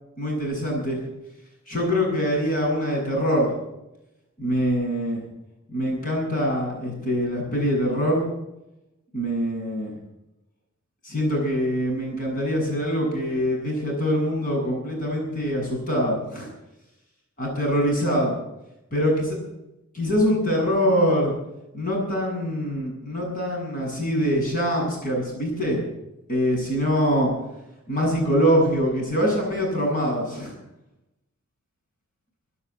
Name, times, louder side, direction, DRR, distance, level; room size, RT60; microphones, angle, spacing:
voice 1, 0.2-1.0 1.7-3.5 4.4-5.2 5.7-8.2 9.1-9.9 11.0-16.5 17.4-18.4 18.9-19.4 19.9-21.3 21.7-25.8 26.3-27.3 27.9-30.5, equal, 40° left, -2 dB, 8.0 m, -24 dB
17.0 x 9.7 x 8.8 m, 0.92 s
head